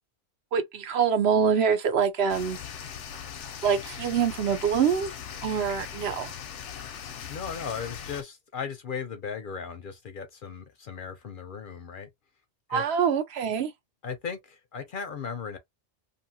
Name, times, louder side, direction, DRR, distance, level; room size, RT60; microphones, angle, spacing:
voice 1, 0.5-2.6 3.6-5.1 5.4-6.3 12.7-13.7, right 7 dB, 70° right, 0.9 m, -25 dB
sound 1, 2.3-8.2, left 8 dB, 85° left, 0.9 m, -40 dB
voice 2, 7.3-12.1 12.7-12.8 14.0-15.6, left 6 dB, 55° left, 0.6 m, -36 dB
2.7 x 2.6 x 2.7 m
omnidirectional pair, 1.2 m